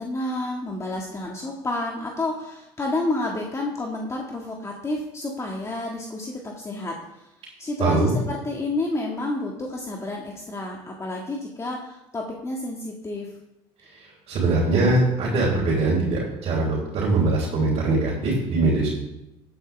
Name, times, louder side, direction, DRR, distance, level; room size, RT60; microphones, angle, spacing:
voice 1, 0.0-7.3 7.6-13.3, left 2 dB, 25° left, -1 dB, 1.9 m, -30 dB
voice 2, 7.8-8.1 13.9-18.9, right 2 dB, 55° right, -5 dB, 3.7 m, -22 dB
14.0 x 9.2 x 3.5 m, 0.91 s
supercardioid pair, 80°, 12 cm